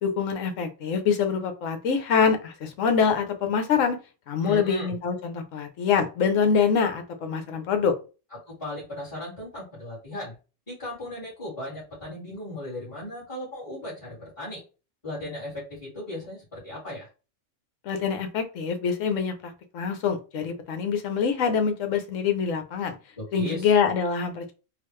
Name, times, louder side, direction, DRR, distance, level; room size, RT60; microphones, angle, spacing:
voice 1, 0.0-4.0 4.3-7.9 17.8-23.0 23.3-24.5, left 6 dB, 70° left, 6 dB, 1.1 m, -25 dB
voice 2, 4.4-5.0 8.5-10.3 10.7-14.6 15.0-17.1 23.2-23.7, left 1 dB, 20° left, -10 dB, 2.1 m, -36 dB
4.0 x 2.4 x 3.1 m, 0.32 s
omnidirectional pair, 1.4 m